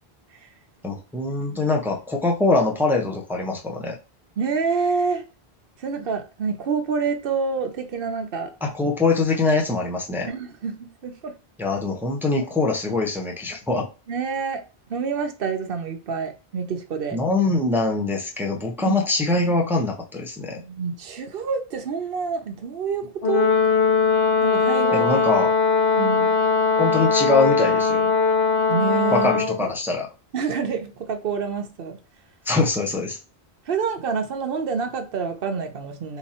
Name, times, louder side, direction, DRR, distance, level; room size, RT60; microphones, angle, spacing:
voice 1, 0.8-4.0 8.6-10.3 11.6-13.9 17.1-20.6 24.9-25.5 26.8-28.1 29.1-30.1 32.4-33.2, left 3 dB, ahead, 0.6 m, -23 dB
voice 2, 1.4-1.7 4.4-5.2 5.8-8.5 10.3-11.3 14.1-14.6 14.9-17.2 18.8-19.0 20.6-23.5 24.4-25.1 26.0-26.3 28.7-29.5 30.3-32.0 33.7-36.2, right 5 dB, 65° right, 0.9 m, -27 dB
Brass instrument, 23.2-29.6, left 5 dB, 60° left, 1.0 m, -20 dB
3.6 x 3.0 x 4.2 m
omnidirectional pair, 1.1 m